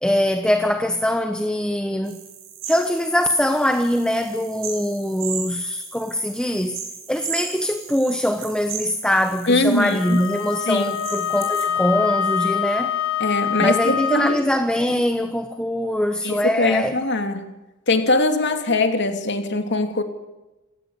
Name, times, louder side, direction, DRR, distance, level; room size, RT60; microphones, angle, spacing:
voice 1, 0.0-2.2 2.7-6.8 7.1-13.0 13.6-17.0, left 1 dB, 5° left, 1.1 m, -22 dB
sound 1, 2.1-11.6, right 7 dB, 65° right, 6.7 m, -36 dB
voice 2, 9.5-10.2 10.7-11.0 13.2-14.4 16.2-17.5 17.9-20.0, left 2 dB, 55° left, 2.9 m, -21 dB
Wind instrument woodwind instrument, 9.9-14.5, left 8 dB, 85° left, 1.7 m, -25 dB
28.0 x 17.0 x 8.1 m
head